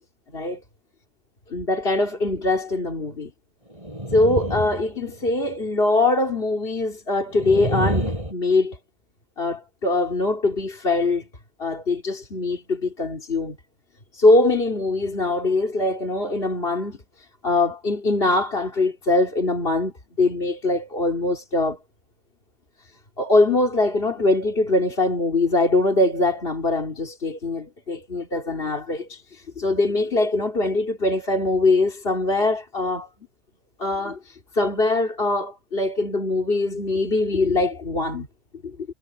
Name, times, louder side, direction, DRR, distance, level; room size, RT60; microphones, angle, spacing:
voice 1, 1.5-3.3 4.1-8.8 9.4-11.3 11.6-13.6 14.1-17.0 17.4-19.9 20.2-21.8 23.2-33.1 33.8-38.3 38.6-38.8, left 2 dB, 50° left, 3.0 m, -22 dB
sound 1, 3.7-5.5 7.3-8.3, right 1 dB, 25° right, 8.2 m, -27 dB
omnidirectional pair, 1.2 m